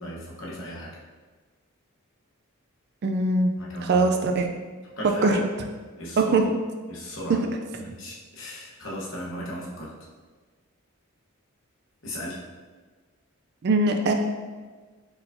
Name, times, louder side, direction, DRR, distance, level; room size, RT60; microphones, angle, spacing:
voice 1, 0.0-1.0 3.6-4.0 5.0-5.4 6.0-6.3 6.9-7.4 7.7-9.9 12.0-12.4, left 1 dB, 55° left, -4 dB, 1.0 m, -36 dB
voice 2, 3.0-3.5 3.8-4.5 5.2-5.4 6.2-6.5 7.3-7.5 13.6-14.1, right 3 dB, 50° right, 4 dB, 0.3 m, -21 dB
4.5 x 3.9 x 2.6 m, 1.4 s
head